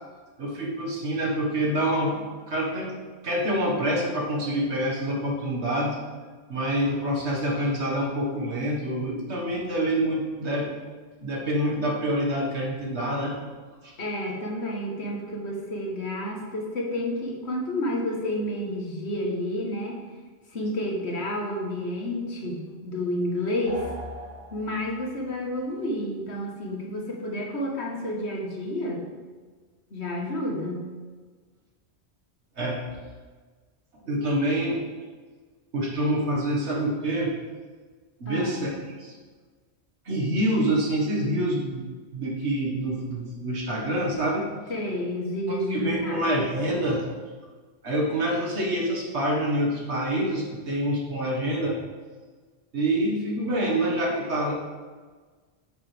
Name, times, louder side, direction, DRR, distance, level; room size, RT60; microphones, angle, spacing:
voice 1, 0.4-2.9 3.2-6.0 6.5-10.7 11.2-13.4 13.8-13.9 32.6-32.8 34.0-34.8 35.7-37.3 38.2-38.7 39.0-39.2 40.1-41.9 42.1-44.5 45.7-47.0 47.8-51.8 52.7-54.5, right 1 dB, 80° right, -3 dB, 2.0 m, -26 dB
voice 2, 14.0-20.0 20.5-23.8 24.5-29.1 29.9-30.8 38.3-38.7 44.7-46.2, left 1 dB, 75° left, -1 dB, 1.7 m, -30 dB
sound 1, 23.7-25.2, equal, 35° right, 2.5 m, -39 dB
8.6 x 7.3 x 3.5 m, 1.4 s
omnidirectional pair, 1.1 m